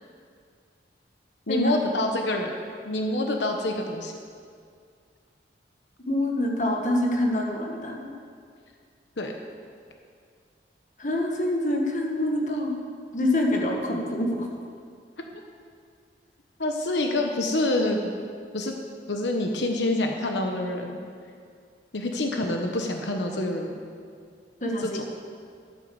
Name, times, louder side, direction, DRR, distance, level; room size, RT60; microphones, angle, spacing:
voice 1, 1.5-2.5 2.8-4.1 9.2-9.3 16.6-18.0 18.5-18.7 19.1-21.0 21.9-23.8 24.8-25.1, left 2 dB, 80° left, 3 dB, 1.1 m, -26 dB
voice 2, 6.1-8.1 11.0-12.8 13.1-14.5 24.6-25.1, left 1 dB, 45° left, 1 dB, 1.7 m, -26 dB
13.0 x 9.0 x 7.1 m, 2.2 s
head